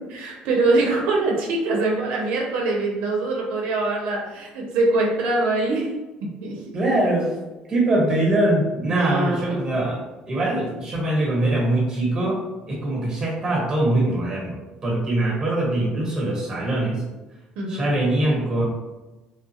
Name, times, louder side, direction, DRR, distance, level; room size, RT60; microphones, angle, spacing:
voice 1, 0.2-5.9 6.4-6.8 8.9-9.5 17.6-17.9, right 2 dB, 80° right, -1 dB, 0.6 m, -23 dB
voice 2, 6.7-7.3 7.7-12.4 12.7-14.5 14.8-17.0 17.7-18.6, right 1 dB, 25° right, -2 dB, 1.2 m, -22 dB
3.4 x 2.3 x 2.9 m, 1.1 s
cardioid pair, 125°, 3 cm